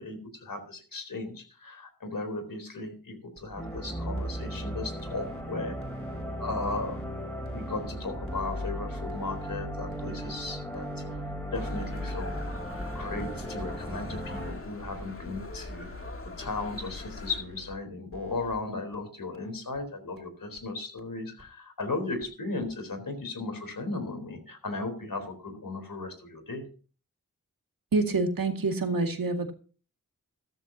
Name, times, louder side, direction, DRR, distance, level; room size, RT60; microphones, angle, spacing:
voice 1, 0.0-5.8 6.4-7.0 7.5-11.0 11.5-12.3 12.9-15.9 16.4-26.6, left 3 dB, 75° left, 7 dB, 3.9 m, -36 dB
sound 1, 3.4-3.8 4.2-4.6 5.0-5.4 5.8-6.2 6.6-7.0 7.4-7.9 8.3-8.7 9.1-9.5 9.9-10.3 10.7-11.2 11.6-12.0 12.4-12.8 13.2-13.6 14.0-14.4 14.8-15.3 15.7-16.1 16.5-16.9 17.3-17.7 18.1-18.5 18.9-19.0 19.3-19.4 19.7-19.8 20.2-20.3 20.6-20.7 21.0-21.1 21.4-21.5 21.8-21.9 22.2-22.3 22.6-22.7, equal, 40° right, 3.3 m, -49 dB
sound 2, 3.6-14.5, equal, 5° left, 6.4 m, -36 dB
sound 3, 11.5-17.4, left 2 dB, 40° left, 2.0 m, -42 dB
voice 2, 27.9-29.5, right 3 dB, 80° right, 5 dB, 2.2 m, -27 dB
14.0 x 13.5 x 2.8 m, 0.38 s
cardioid pair, 45°, 34 cm